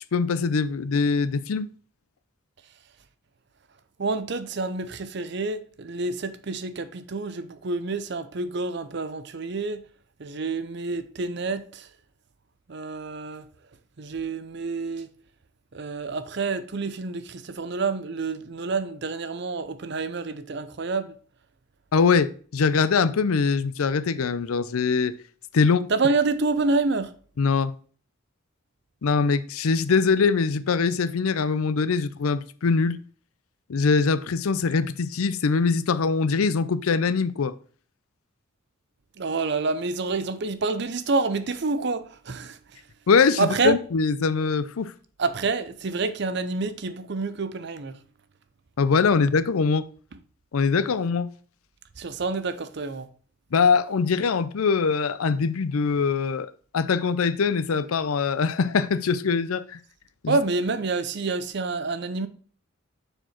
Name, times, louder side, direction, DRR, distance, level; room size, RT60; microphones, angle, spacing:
voice 1, 0.1-1.7 21.9-25.1 25.5-25.9 27.4-27.7 29.0-33.0 33.7-37.5 43.1-44.9 48.8-49.9 50.5-51.3 53.5-56.5 56.7-59.8 60.2-60.4, left 5 dB, 85° left, 0.5 m, -22 dB
voice 2, 4.0-9.8 10.2-11.9 12.7-13.5 14.0-15.1 15.7-21.1 25.9-27.1 39.2-42.8 43.4-43.8 45.2-48.0 50.1-50.2 52.0-53.1 60.3-62.3, right 3 dB, 55° right, 0.6 m, -28 dB
6.6 x 4.6 x 4.3 m
head